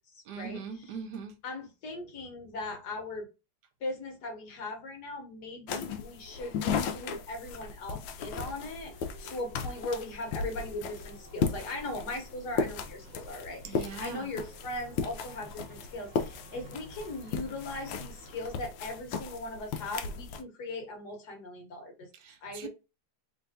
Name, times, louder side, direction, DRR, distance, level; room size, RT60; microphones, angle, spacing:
voice 1, 0.2-1.3 13.6-14.3 22.1-22.7, right 6 dB, 65° right, 1.3 m, -41 dB
voice 2, 1.4-3.3 3.8-22.1 22.4-22.7, left 2 dB, 60° left, 1.6 m, -39 dB
sound 1, 5.7-20.4, left 5 dB, 80° left, 1.3 m, -36 dB
sound 2, 8.6-18.6, right 2 dB, 25° right, 1.2 m, -54 dB
3.4 x 3.3 x 2.6 m
omnidirectional pair, 2.1 m